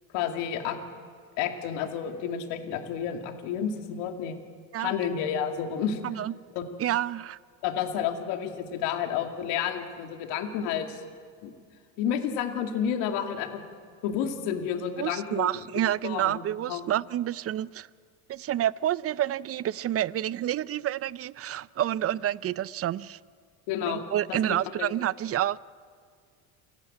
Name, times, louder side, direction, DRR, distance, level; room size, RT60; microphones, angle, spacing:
voice 1, 0.1-0.8 1.4-4.4 4.8-6.0 6.5-6.7 7.6-11.0 11.4-11.5 12.0-13.6 14.0-15.5 16.0-16.4 16.7-16.8 23.7-24.4 24.8-24.9, left 8 dB, 75° left, 2.5 m, -30 dB
voice 2, 6.8-7.4 15.0-17.9 18.3-23.2 23.8-25.6, right 12 dB, 35° right, 0.5 m, -29 dB
29.0 x 11.5 x 8.7 m
supercardioid pair, 100°, 42 cm